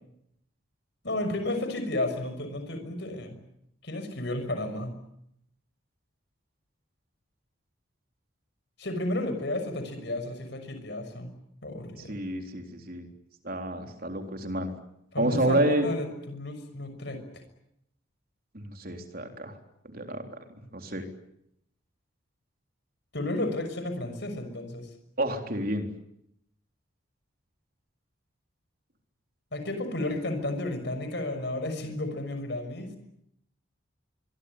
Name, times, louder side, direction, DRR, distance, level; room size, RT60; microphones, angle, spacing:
voice 1, 1.0-3.4 3.8-5.0 8.8-11.4 11.6-12.2 15.1-17.4 23.1-24.9 29.5-33.0, left 1 dB, 55° left, 8 dB, 6.4 m, -32 dB
voice 2, 12.1-13.1 13.4-14.7 15.2-15.9 18.5-19.5 19.9-20.4 20.7-21.0 25.2-25.9, right 1 dB, 45° right, 5 dB, 3.9 m, -29 dB
25.0 x 23.5 x 9.8 m, 0.77 s
head